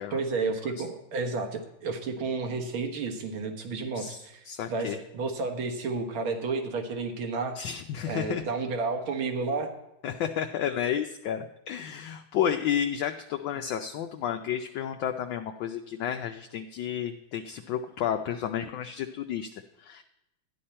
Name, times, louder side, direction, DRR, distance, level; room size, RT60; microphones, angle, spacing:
voice 1, 0.1-7.7 8.1-9.7, right 4 dB, 75° right, 4 dB, 2.1 m, -31 dB
voice 2, 4.5-5.0 7.6-8.4 10.0-20.0, left 9 dB, 75° left, 5 dB, 1.3 m, -31 dB
13.0 x 10.0 x 4.3 m, 0.90 s
omnidirectional pair, 2.3 m